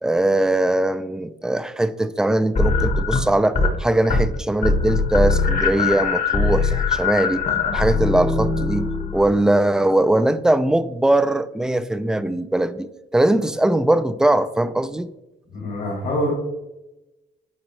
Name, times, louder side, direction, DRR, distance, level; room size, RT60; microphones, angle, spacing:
voice 1, 0.0-7.4 7.7-15.1, right 1 dB, 5° right, 12 dB, 0.3 m, -20 dB
sound 1, 2.6-3.8 4.0-4.4 4.6-9.4, left 4 dB, 40° left, 1.2 m, -21 dB
voice 2, 15.5-16.3, equal, 65° left, -4 dB, 2.2 m, -25 dB
9.3 x 3.9 x 3.1 m, 0.98 s
cardioid pair, 90°, 20 cm